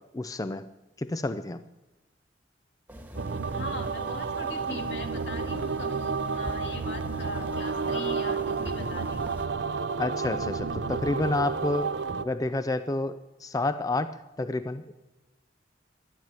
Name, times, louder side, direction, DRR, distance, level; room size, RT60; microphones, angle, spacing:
voice 1, 0.1-0.7 1.0-1.6 10.0-11.9 12.2-14.1 14.4-14.9, left 2 dB, 20° left, 11 dB, 0.4 m, -29 dB
sound 1, 2.9-9.5, equal, 10° right, 1.6 m, -44 dB
sound 2, 3.2-12.2, right 4 dB, 85° right, 0.6 m, -31 dB
voice 2, 3.5-9.4, left 2 dB, 75° left, 3 dB, 2.4 m, -40 dB
12.5 x 12.0 x 8.9 m, 1.0 s
head